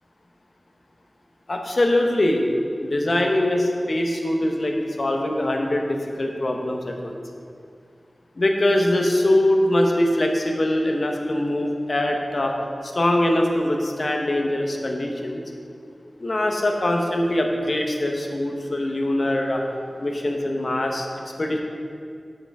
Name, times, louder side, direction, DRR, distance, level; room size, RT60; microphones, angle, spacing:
voice 1, 1.5-2.5 2.8-7.2 8.4-12.5 12.8-15.4 16.2-19.6 20.0-21.1 21.4-21.6, left 1 dB, 55° left, 2 dB, 0.9 m, -22 dB
7.8 x 5.8 x 4.8 m, 2.4 s
wide cardioid pair, 75°, 0 cm